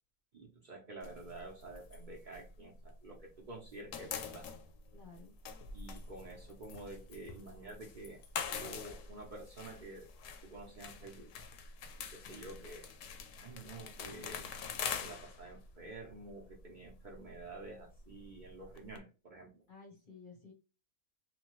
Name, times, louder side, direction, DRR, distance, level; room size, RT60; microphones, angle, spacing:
voice 1, 0.3-4.5 5.7-8.2 8.5-10.1 10.4-11.4 12.0-12.9 13.3-14.5 15.0-19.6, right 2 dB, 45° right, -2 dB, 0.7 m, -49 dB
sound 1, 1.0-3.3 3.5-19.0, left 6 dB, 75° left, 0.9 m, -45 dB
voice 2, 4.9-5.3 12.2-12.7 19.7-20.5, left 4 dB, 45° left, 1 dB, 0.8 m, -55 dB
3.0 x 2.2 x 2.9 m, 0.32 s
omnidirectional pair, 1.4 m